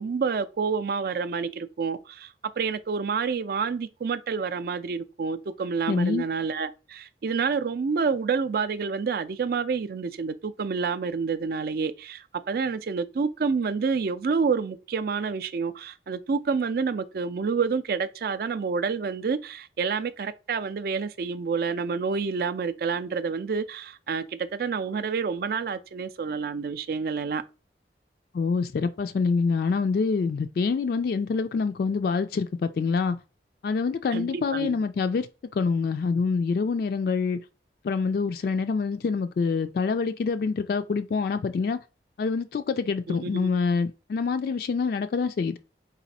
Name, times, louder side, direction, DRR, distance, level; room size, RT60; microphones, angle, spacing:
voice 1, 0.0-27.4 34.1-34.8 43.1-43.5, right 5 dB, 55° right, 0.4 m, -28 dB
voice 2, 5.9-6.3 28.3-33.2 33.6-35.3 35.5-37.4 37.8-41.8 42.2-45.6, left 4 dB, 55° left, 0.3 m, -26 dB
4.1 x 2.5 x 4.1 m
head